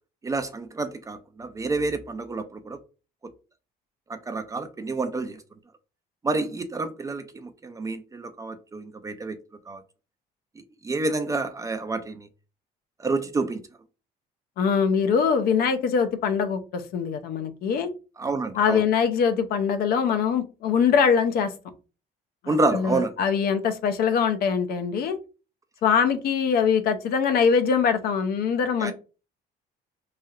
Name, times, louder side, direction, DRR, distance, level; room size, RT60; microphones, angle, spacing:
voice 1, 0.2-2.8 3.2-3.3 4.1-5.4 6.2-9.4 9.7-9.8 10.6-12.3 13.0-13.6 18.2-18.8 22.5-23.1 28.8-28.9, right 3 dB, 20° right, 9 dB, 0.3 m, -29 dB
voice 2, 14.6-17.9 18.5-21.5 22.4-25.2 25.8-28.9, left 6 dB, 65° left, 9 dB, 0.5 m, -23 dB
3.2 x 2.6 x 2.3 m, 0.33 s
cardioid pair, 110°, 17 cm